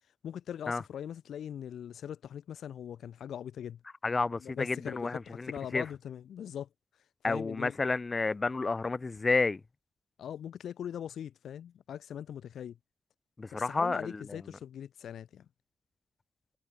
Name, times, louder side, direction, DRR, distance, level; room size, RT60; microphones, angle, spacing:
voice 1, 0.2-3.8 4.4-6.7 7.2-7.8 10.2-12.8 13.5-15.5, left 9 dB, 70° left, 4.2 m, -41 dB
voice 2, 4.0-5.8 7.2-9.6 13.4-14.4, left 3 dB, 25° left, 0.6 m, -30 dB
cardioid pair, 135°, 0 cm